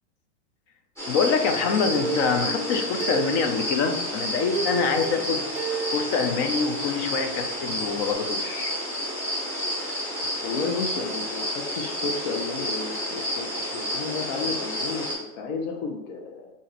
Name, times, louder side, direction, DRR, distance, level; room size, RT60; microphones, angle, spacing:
sound 1, 1.0-15.1, left 1 dB, 5° left, 1.2 m, -30 dB
voice 1, 1.1-5.4 5.9-8.7, left 5 dB, 30° left, 6 dB, 0.4 m, -25 dB
Plucked string instrument, 1.9-3.9 4.5-7.3 7.7-7.8 8.1-8.2, right 5 dB, 45° right, 0.7 m, -34 dB
voice 2, 10.4-16.5, left 4 dB, 50° left, 0 dB, 0.8 m, -32 dB
3.9 x 2.6 x 4.0 m, 0.85 s
supercardioid pair, 140°, 37 cm